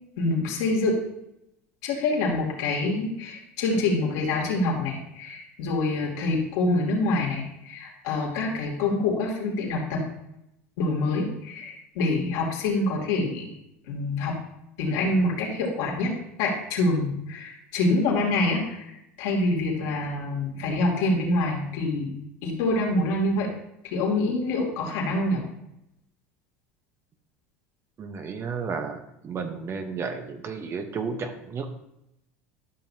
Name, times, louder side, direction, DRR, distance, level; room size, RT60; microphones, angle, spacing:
voice 1, 0.2-1.0 1.8-10.0 10.8-13.5 13.9-14.4 14.8-16.1 16.4-22.1 22.4-23.5 23.8-25.4, left 2 dB, 70° left, -2 dB, 2.8 m, -26 dB
voice 2, 28.0-31.7, right 5 dB, 35° right, 6 dB, 1.0 m, -33 dB
12.5 x 5.9 x 2.9 m, 0.83 s
supercardioid pair, 95°, 7 cm